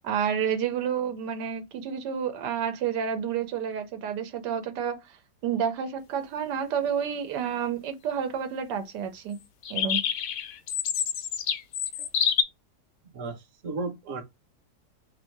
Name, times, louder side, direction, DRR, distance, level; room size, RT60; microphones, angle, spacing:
voice 1, 0.0-5.0 5.4-9.4 9.7-10.0, right 8 dB, 90° right, 1.3 m, -29 dB
sound 1, 9.6-12.4, left 8 dB, 65° left, 0.9 m, -27 dB
voice 2, 13.1-14.2, right 3 dB, 55° right, 1.1 m, -34 dB
3.0 x 2.6 x 4.4 m
omnidirectional pair, 1.8 m